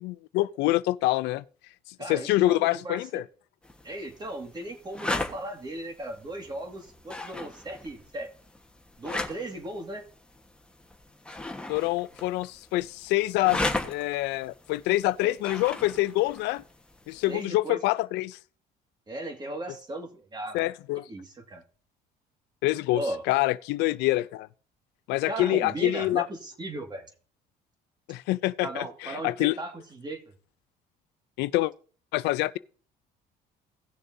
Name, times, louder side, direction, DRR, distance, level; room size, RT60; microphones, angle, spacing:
voice 1, 0.0-1.4 2.1-3.2 11.7-16.6 17.1-18.4 20.5-21.0 22.6-23.0 23.3-24.5 25.1-26.3 28.1-29.6 31.4-31.7 32.1-32.6, left 17 dB, 90° left, 0.4 m, -26 dB
voice 2, 2.0-3.2 3.8-8.3 9.0-10.0 15.2-15.4 17.3-17.8 19.1-20.7 21.0-21.6 22.9-23.2 25.3-27.0 28.6-30.2, right 1 dB, 25° right, 2.0 m, -37 dB
sound 1, 3.6-17.4, left 2 dB, 5° left, 1.3 m, -38 dB
17.5 x 6.8 x 2.7 m
cardioid pair, 110°, 17 cm